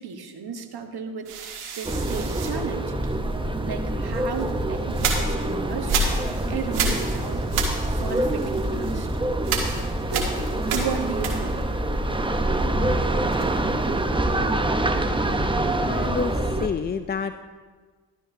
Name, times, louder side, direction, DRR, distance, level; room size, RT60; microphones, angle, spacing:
voice 1, 0.0-2.9 3.6-7.5 7.9-9.1 10.1-10.3 10.7-11.6, right 5 dB, 50° right, 6 dB, 1.3 m, -34 dB
sound 1, 1.3-3.5 4.1-11.8 12.1-13.7, right 4 dB, 85° right, 1.5 m, -31 dB
sound 2, 1.8-16.7, right 1 dB, 10° right, 0.8 m, -25 dB
voice 2, 15.5-17.3, left 6 dB, 25° left, 10 dB, 0.3 m, -29 dB
12.5 x 12.0 x 2.7 m, 1.4 s
supercardioid pair, 55°, 49 cm